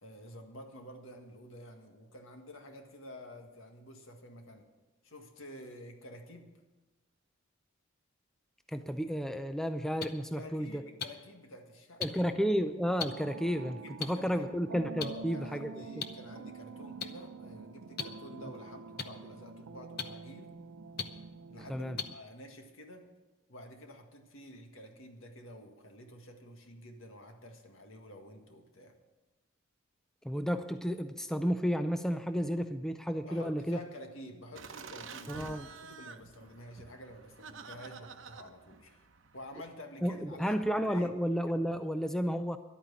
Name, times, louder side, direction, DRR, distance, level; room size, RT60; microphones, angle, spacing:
voice 1, 0.0-4.7 5.0-6.5 10.3-12.4 13.8-14.5 15.0-20.6 21.5-23.1 23.5-29.0 33.2-39.1 39.3-40.6 40.9-41.1, equal, 75° left, 4 dB, 1.8 m, -50 dB
voice 2, 8.7-10.8 12.0-15.7 21.7-22.0 30.2-33.8 35.3-35.7 40.0-42.6, equal, ahead, 8 dB, 0.4 m, -32 dB
sound 1, 10.0-10.1 11.0-11.1 12.0-12.1 13.0-13.1 14.0-14.1 15.0-15.1 16.0-16.1 17.0-17.1 18.0-18.1 19.0-19.1 20.0-20.1 21.0-21.1 22.0-22.1 23.0-23.1, left 6 dB, 45° left, 0.8 m, -34 dB
sound 2, 13.1-22.1, right 4 dB, 85° right, 0.6 m, -47 dB
Laughter, 34.5-39.7, right 5 dB, 65° right, 0.9 m, -49 dB
11.5 x 8.9 x 8.5 m, 1.2 s
head